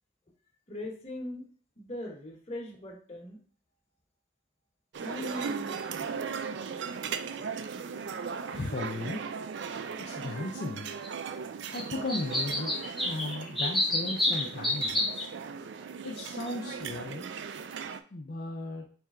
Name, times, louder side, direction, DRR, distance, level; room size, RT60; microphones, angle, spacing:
voice 1, 0.7-1.4 1.8-3.4 5.0-6.1, left 1 dB, 30° left, -1 dB, 1.1 m, -40 dB
sound 1, 4.9-18.0, right 6 dB, 60° right, 0.3 m, -38 dB
voice 2, 8.5-9.2 10.0-10.9 11.7-15.2 16.0-17.3 18.1-18.9, left 2 dB, 50° left, -1 dB, 0.5 m, -36 dB
sound 2, 11.0-11.1 11.7-11.8 12.1-15.2 16.2-16.3 16.5-16.6, left 1 dB, ahead, 0.7 m, -28 dB
4.4 x 3.2 x 3.7 m, 0.43 s
head